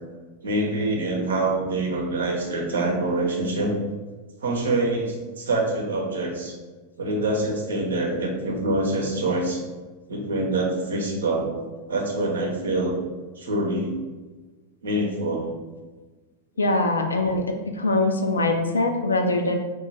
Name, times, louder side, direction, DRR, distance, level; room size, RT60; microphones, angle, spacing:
voice 1, 0.4-3.7 4.4-6.5 7.0-9.6 10.1-11.6 11.9-13.0 13.4-13.9 14.8-15.5 17.8-17.9, right 2 dB, 70° right, 0 dB, 0.7 m, -25 dB
voice 2, 16.6-17.4 17.7-19.6, left 2 dB, 75° left, 4 dB, 0.4 m, -22 dB
3.0 x 2.3 x 4.0 m, 1.3 s
figure-of-eight pair, 90°, 0 cm